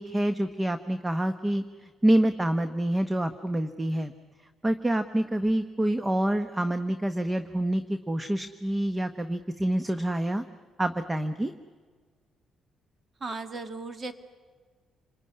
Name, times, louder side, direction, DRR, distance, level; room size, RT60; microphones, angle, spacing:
voice 1, 0.0-4.1 4.6-10.4 10.8-11.5, right 1 dB, 15° right, 10 dB, 1.0 m, -27 dB
voice 2, 13.2-14.1, right 3 dB, 35° right, 8 dB, 2.2 m, -36 dB
28.0 x 21.0 x 9.8 m, 1.6 s
cardioid pair, 90°, 0 cm